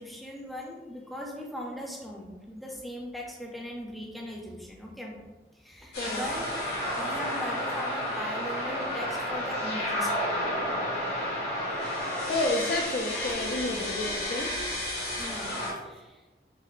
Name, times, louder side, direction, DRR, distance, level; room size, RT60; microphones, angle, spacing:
voice 1, 0.0-5.2 5.5-6.5 7.0-10.3 15.2-16.2, equal, ahead, -2 dB, 0.5 m, -39 dB
sound 1, 5.9-15.7, left 1 dB, 80° left, 1.5 m, -31 dB
voice 2, 12.3-14.6, left 2 dB, 55° left, 4 dB, 0.3 m, -30 dB
5.7 x 2.0 x 2.4 m, 1.1 s
head